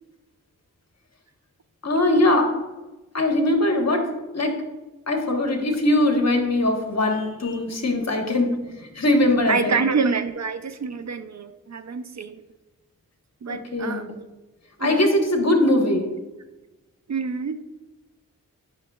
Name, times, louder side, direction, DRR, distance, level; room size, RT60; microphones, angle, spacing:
voice 1, 1.8-2.5 3.1-4.1 4.3-4.6 5.1-9.8 13.5-14.1 14.8-16.1, left 1 dB, 50° left, 3 dB, 1.1 m, -21 dB
voice 2, 9.5-12.4 13.4-14.2 14.8-15.1 17.1-17.6, right 5 dB, 55° right, 10 dB, 0.5 m, -27 dB
8.8 x 5.9 x 2.3 m, 1.1 s
cardioid pair, 40°, 34 cm